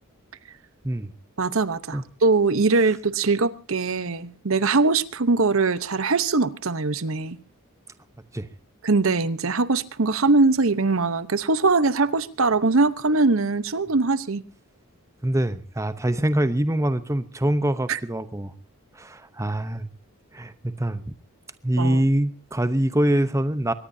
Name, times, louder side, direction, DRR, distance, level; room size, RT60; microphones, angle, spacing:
voice 1, 1.4-7.4 8.8-14.4 17.9-18.0 21.8-22.0, right 3 dB, 65° right, 0.9 m, -22 dB
voice 2, 15.2-18.5 18.9-19.9 20.3-21.0 21.6-23.7, right 1 dB, 15° right, 0.8 m, -24 dB
23.0 x 20.0 x 2.7 m
head